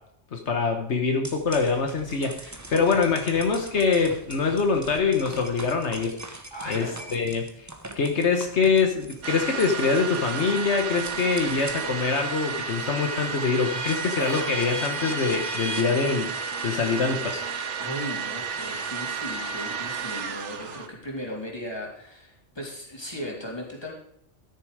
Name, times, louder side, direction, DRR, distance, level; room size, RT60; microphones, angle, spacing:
voice 1, 0.3-6.4 6.7-7.7 7.9-16.3 16.6-17.5, left 5 dB, 75° left, 4 dB, 1.4 m, -24 dB
sound 1, 1.2-11.9 12.4-18.0, right 1 dB, 15° right, 1.1 m, -41 dB
voice 2, 2.7-3.1 6.5-7.2 17.8-23.9, equal, 20° left, -2 dB, 3.1 m, -37 dB
sound 2, 9.2-20.9, right 5 dB, 85° right, 1.2 m, -32 dB
Laughter, 13.8-14.5 14.8-16.1 17.0-17.4 18.7-18.9 19.8-19.9, equal, 55° left, 3.3 m, -42 dB
13.5 x 6.8 x 4.9 m, 0.72 s
omnidirectional pair, 1.2 m